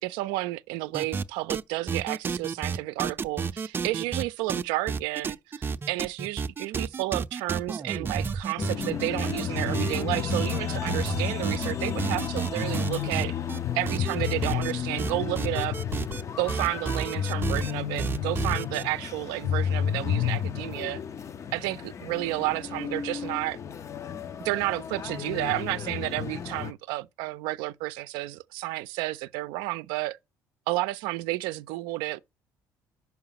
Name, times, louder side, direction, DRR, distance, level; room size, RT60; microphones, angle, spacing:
voice 1, 0.0-13.4 13.7-15.8 16.4-21.0 21.5-23.6 24.4-30.2 30.7-32.2, right 18 dB, 85° right, 0.4 m, -31 dB
sound 1, 0.9-1.6 1.9-4.2 4.5-13.6 13.9-14.7 15.0-16.2 16.5-17.7 18.0-18.8, right 5 dB, 30° right, 0.5 m, -31 dB
sound 2, 8.6-26.7, left 9 dB, 40° left, 0.5 m, -32 dB
5.7 x 4.9 x 5.7 m
supercardioid pair, 80°, 8 cm